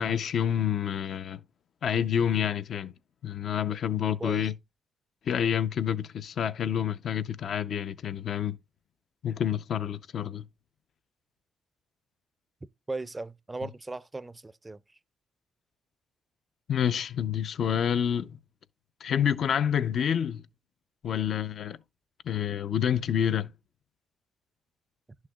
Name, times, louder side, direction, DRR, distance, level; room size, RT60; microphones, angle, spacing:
voice 1, 0.0-1.4 1.8-2.9 3.2-4.5 5.2-8.6 9.2-10.4 16.7-18.4 19.0-20.4 21.0-21.8 22.2-23.5, left 9 dB, 60° left, 0.5 m, -28 dB
voice 2, 4.2-4.5 12.9-15.0, right 2 dB, 20° right, 0.4 m, -38 dB
11.0 x 6.3 x 2.3 m
cardioid pair, 90°, 0 cm